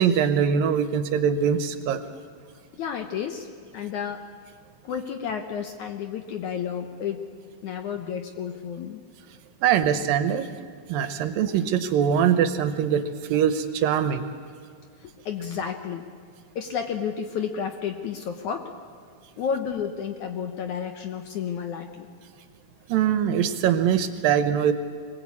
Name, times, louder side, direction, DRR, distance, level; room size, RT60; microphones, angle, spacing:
voice 1, 0.0-2.1 9.6-10.5 10.9-14.3 22.9-24.7, right 8 dB, 75° right, 10 dB, 2.4 m, -22 dB
voice 2, 2.8-3.5 3.7-4.2 4.8-7.3 7.6-9.0 15.0-16.0 16.6-18.7 19.4-22.1, left 7 dB, 70° left, 5 dB, 1.9 m, -31 dB
24.5 x 20.0 x 8.4 m, 2.1 s
omnidirectional pair, 4.4 m